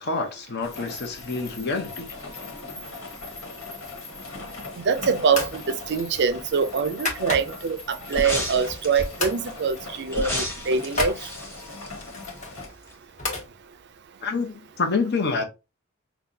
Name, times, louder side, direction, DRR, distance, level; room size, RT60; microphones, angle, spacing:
voice 1, 0.0-2.1 14.2-15.4, left 4 dB, 50° left, 0.9 m, -27 dB
sound 1, 0.6-12.7, left 3 dB, 75° left, 1.6 m, -40 dB
sound 2, 4.4-4.8 5.3-5.6 6.0-7.8 8.2-8.9 9.2-9.4 9.7-9.9 10.1-11.2 12.0-13.5, left 2 dB, 35° left, 1.5 m, -32 dB
voice 2, 4.8-11.2, right 5 dB, 55° right, 0.5 m, -24 dB
sound 3, 8.1-9.2 10.1-12.6 12.9-13.0, left 1 dB, 10° left, 1.2 m, -31 dB
5.6 x 2.3 x 2.7 m
head